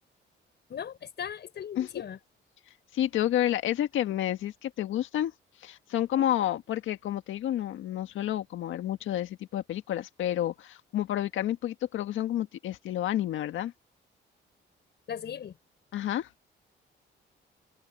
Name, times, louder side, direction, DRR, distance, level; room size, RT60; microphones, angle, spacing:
voice 1, 0.7-2.2 6.1-6.3 15.1-15.6, left 8 dB, 60° left, 5.7 m, -38 dB
voice 2, 2.9-5.3 5.6-13.7 15.9-16.3, left 12 dB, 80° left, 1.7 m, -30 dB
open air
cardioid pair, 90°, 20 cm